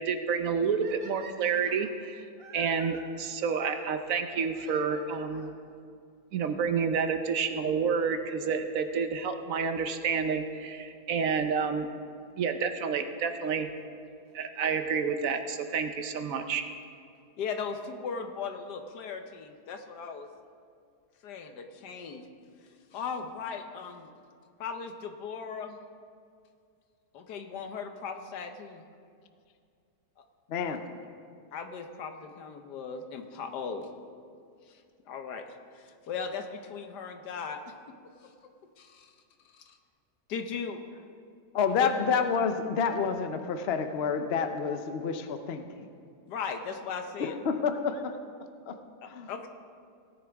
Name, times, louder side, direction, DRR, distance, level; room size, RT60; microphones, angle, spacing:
voice 1, 0.0-2.2 2.5-5.5 6.3-11.9 12.4-13.7 14.3-16.6, right 6 dB, 65° right, 8 dB, 1.0 m, -29 dB
sound 1, 0.8-3.0 4.5-5.6 6.5-6.6 7.3-7.4 7.6-7.7 9.6-9.8 12.6-12.7 13.8-13.9 15.3-15.4 15.7-15.8 16.0-16.1 16.3-16.4 16.6-16.7 16.8-16.9 17.1-17.2, right 4 dB, 40° right, 1.1 m, -50 dB
voice 2, 17.4-20.3 21.2-22.3 22.9-24.1 24.6-25.8 27.1-28.8 31.5-33.9 34.7-35.5 35.7-37.6 37.9-38.0 38.2-38.3 38.8-39.1 39.5-39.8 40.3-40.8 41.7-41.9 46.3-47.4 49.0-49.5, left 6 dB, 80° left, 6 dB, 1.4 m, -38 dB
voice 3, 41.5-45.9 47.2-48.1 48.7-48.8 49.1-49.3, left 6 dB, 60° left, 8 dB, 0.7 m, -29 dB
17.5 x 9.9 x 3.5 m, 2.3 s
omnidirectional pair, 1.7 m